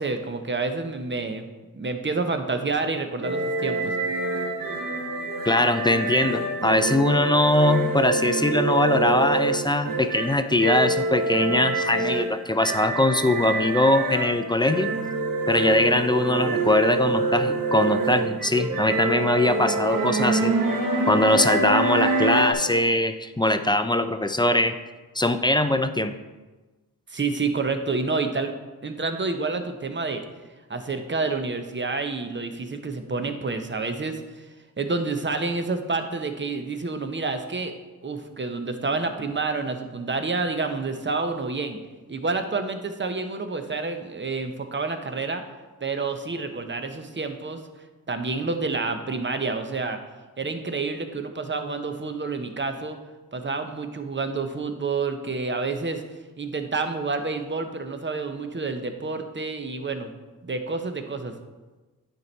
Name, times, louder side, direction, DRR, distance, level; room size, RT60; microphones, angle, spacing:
voice 1, 0.0-1.5 1.7-4.0 27.1-28.5 28.8-30.2 30.7-34.2 34.8-37.7 38.0-41.8 42.1-45.4 45.8-47.6 48.1-50.0 50.4-53.0 53.3-56.0 56.4-60.1 60.4-61.3, right 3 dB, 30° right, 7 dB, 0.9 m, -28 dB
sound 1, 3.2-22.5, right 2 dB, 60° right, 1.1 m, -26 dB
voice 2, 5.5-14.9 15.5-20.5 21.1-24.7 25.1-26.1, left 1 dB, 10° left, 9 dB, 0.5 m, -22 dB
9.3 x 4.5 x 4.1 m, 1.2 s
cardioid pair, 55°, 37 cm